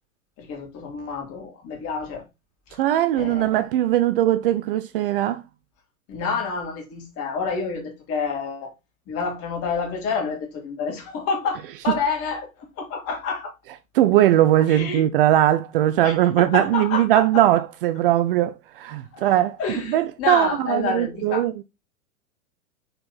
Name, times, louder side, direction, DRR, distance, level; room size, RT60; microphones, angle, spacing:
voice 1, 0.4-2.2 3.2-3.7 6.1-8.7 9.1-12.5 12.8-13.5 14.7-15.0 16.0-17.4 19.1-19.3 19.6-21.6, left 5 dB, 35° left, 2.8 m, -28 dB
voice 2, 2.8-5.4 13.9-19.6 19.9-21.5, right 13 dB, 40° right, 0.6 m, -20 dB
6.7 x 4.5 x 4.1 m
figure-of-eight pair, 100°, 42 cm